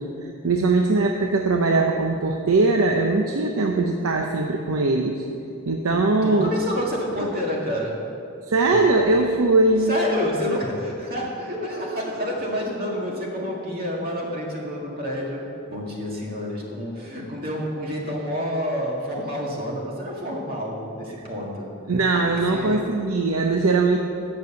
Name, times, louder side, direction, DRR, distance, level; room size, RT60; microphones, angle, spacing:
voice 1, 0.0-5.3 5.6-6.5 8.5-10.0 21.9-24.0, right 3 dB, 80° right, 3 dB, 0.6 m, -21 dB
voice 2, 6.2-8.0 9.9-21.7 22.5-22.8, equal, 45° right, -3 dB, 1.9 m, -28 dB
9.4 x 6.8 x 6.8 m, 2.8 s
head